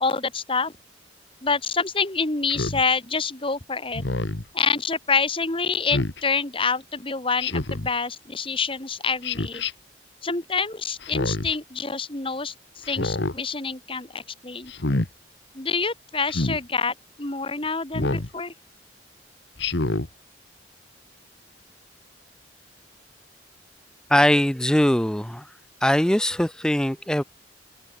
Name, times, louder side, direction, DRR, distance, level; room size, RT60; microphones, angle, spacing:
voice 1, 0.0-0.7 1.4-4.0 4.5-9.6 10.2-14.7 15.5-18.5, left 4 dB, 30° left, 1.9 m, -27 dB
Speech synthesizer, 2.5-2.8 3.9-4.4 5.9-6.2 7.4-7.9 9.2-9.7 11.0-11.5 12.8-13.4 14.7-15.1 16.3-16.6 17.9-18.3 19.6-20.1, left 2 dB, 75° left, 1.5 m, -26 dB
voice 2, 24.1-25.5 25.8-27.2, equal, 5° left, 0.5 m, -21 dB
open air
head